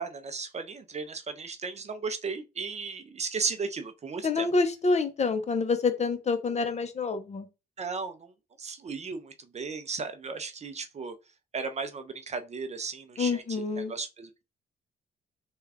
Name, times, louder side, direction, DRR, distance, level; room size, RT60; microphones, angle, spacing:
voice 1, 0.0-4.5 7.8-8.3 8.6-11.1 11.5-13.4 13.8-14.4, right 4 dB, 35° right, 0.5 m, -35 dB
voice 2, 4.2-7.5 13.2-13.9, left 4 dB, 35° left, 0.6 m, -27 dB
3.4 x 2.3 x 3.3 m
cardioid pair, 90°, 20 cm